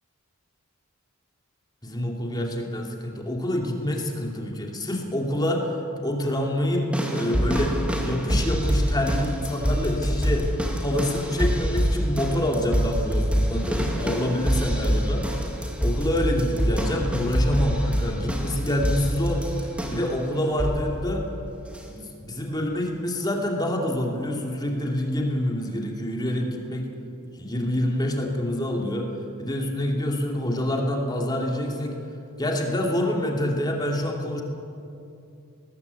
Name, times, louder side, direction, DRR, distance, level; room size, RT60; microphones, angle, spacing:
voice 1, 1.8-5.8 6.0-10.5 10.8-15.3 15.8-21.3 21.9-26.9 27.4-29.1 29.4-32.0 32.4-34.4, left 1 dB, 20° left, 0 dB, 2.6 m, -27 dB
sound 1, 6.9-20.2 20.6-21.0 21.7-21.8, equal, 5° right, 2.4 m, -25 dB
20.5 x 19.5 x 8.2 m, 2.6 s
head